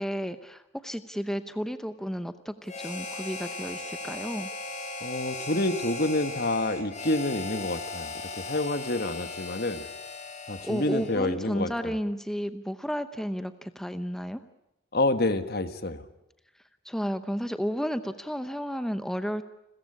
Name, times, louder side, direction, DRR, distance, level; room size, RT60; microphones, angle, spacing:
voice 1, 0.0-4.5 10.6-14.4 16.8-19.4, equal, 5° left, 10 dB, 0.8 m, -32 dB
Harmonica, 2.7-11.3, left 2 dB, 40° left, 4.8 m, -38 dB
voice 2, 5.0-9.9 10.5-12.0 14.9-16.0, left 2 dB, 55° left, 10 dB, 1.5 m, -28 dB
30.0 x 14.5 x 9.8 m, 0.90 s
head